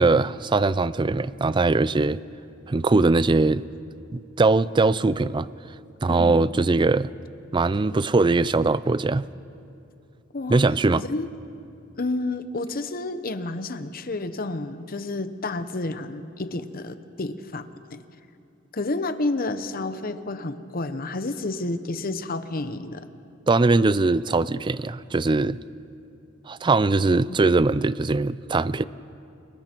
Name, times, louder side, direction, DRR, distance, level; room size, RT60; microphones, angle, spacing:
voice 1, 0.0-2.2 2.7-3.6 4.1-5.5 6.0-7.1 7.5-9.2 10.5-11.0 23.5-25.6 26.5-28.8, right 3 dB, 25° right, 17 dB, 0.4 m, -21 dB
voice 2, 6.1-6.4 10.3-10.6 11.0-11.3 12.0-18.0 18.7-23.1 27.3-27.4, left 2 dB, 50° left, 10 dB, 0.9 m, -30 dB
29.5 x 22.5 x 4.5 m, 2.5 s
head